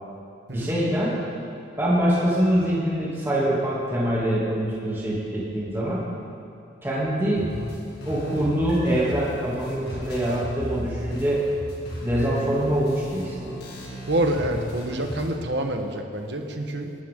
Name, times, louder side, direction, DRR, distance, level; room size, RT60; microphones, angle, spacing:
voice 1, 0.5-1.2 1.8-6.0 6.8-7.5 8.0-11.5 12.0-13.6, right 1 dB, 15° right, -7 dB, 2.7 m, -24 dB
sound 1, 7.4-15.4, left 1 dB, 60° left, 2.1 m, -36 dB
voice 2, 14.1-16.9, right 1 dB, 70° right, 4 dB, 1.4 m, -27 dB
20.5 x 12.5 x 3.8 m, 2.6 s
head